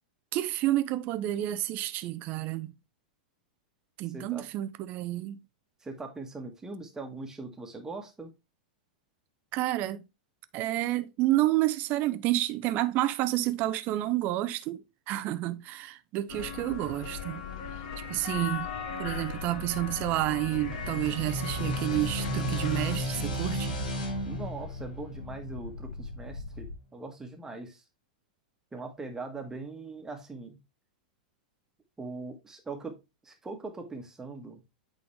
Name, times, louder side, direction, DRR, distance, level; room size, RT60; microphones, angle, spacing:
voice 1, 0.3-2.7 4.0-5.4 9.5-10.1 10.5-17.4 17.7-17.8 18.1-18.7 19.0-23.8, right 15 dB, 40° right, 0.6 m, -30 dB
voice 2, 4.1-4.5 5.8-8.3 24.2-27.8 28.7-30.6 32.0-34.6, right 3 dB, 10° right, 1.5 m, -41 dB
sound 1, 16.3-23.0, left 6 dB, 55° left, 1.7 m, -38 dB
sound 2, 19.0-26.8, left 3 dB, 85° left, 0.9 m, -42 dB
sound 3, 20.6-26.0, equal, 70° left, 3.0 m, -34 dB
8.5 x 3.9 x 3.2 m
hypercardioid pair, 100°, 4 cm